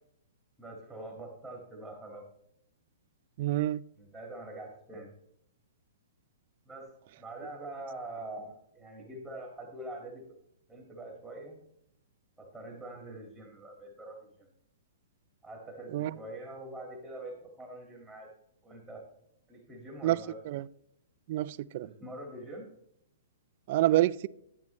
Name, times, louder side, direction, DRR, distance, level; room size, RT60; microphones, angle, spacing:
voice 1, 0.6-2.2 4.0-5.1 6.7-10.2 10.7-11.6 12.4-14.5 15.4-18.3 18.6-19.1 19.5-20.4 21.8-22.7, right 1 dB, ahead, 1 dB, 1.8 m, -44 dB
voice 2, 3.4-3.8 15.9-16.1 20.0-20.2 20.5-20.6 21.3-21.9 23.7-24.3, right 15 dB, 45° right, 18 dB, 0.3 m, -27 dB
10.5 x 9.3 x 3.1 m, 0.75 s
hypercardioid pair, 150°, 0 cm